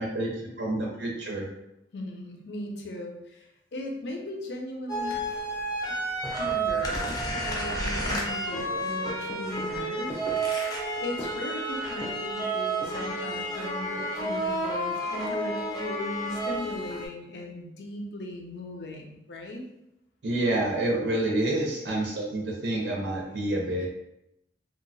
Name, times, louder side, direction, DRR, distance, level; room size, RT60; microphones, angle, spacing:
voice 1, 0.0-1.5 20.2-23.9, right 1 dB, 85° right, -1 dB, 0.5 m, -28 dB
voice 2, 1.9-5.3 6.3-10.2 11.0-19.6 21.8-22.1 22.8-22.9, left 1 dB, 75° left, 2 dB, 0.5 m, -38 dB
sound 1, 4.9-17.1, right 1 dB, 20° left, 0.5 m, -30 dB
2.9 x 2.2 x 2.5 m, 0.84 s
head